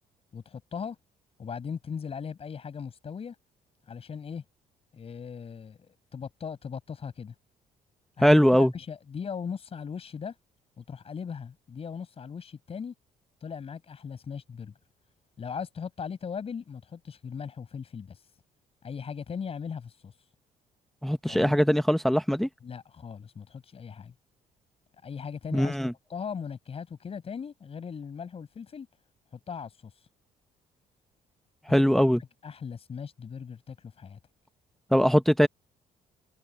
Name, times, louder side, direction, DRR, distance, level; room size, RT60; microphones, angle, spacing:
voice 1, 0.3-1.0 1.4-3.4 3.9-4.4 4.9-7.3 8.2-10.3 10.8-12.9 13.4-14.7 15.4-18.2 18.8-20.1 21.2-21.6 22.6-24.1 25.0-25.8 26.1-28.9 29.3-29.7 31.7-32.0 32.4-34.2, left 6 dB, 40° left, 5.6 m, -38 dB
voice 2, 8.2-8.7 21.0-22.5 25.5-25.9 31.7-32.2 34.9-35.5, equal, ahead, 0.8 m, -21 dB
cardioid pair, 115°, 16 cm